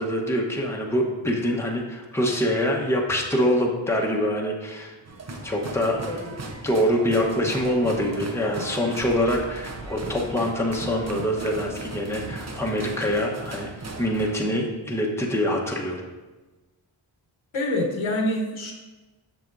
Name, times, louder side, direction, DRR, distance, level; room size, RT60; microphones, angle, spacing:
voice 1, 0.0-4.9 5.4-6.4 6.6-13.7 14.0-16.0, equal, 5° left, -1 dB, 1.0 m, -25 dB
sound 1, 5.0-14.4, right 2 dB, 35° right, 0.8 m, -37 dB
voice 2, 17.5-18.7, left 1 dB, 80° left, 1 dB, 1.2 m, -25 dB
7.7 x 6.0 x 2.6 m, 1.2 s
wide cardioid pair, 65°, 47 cm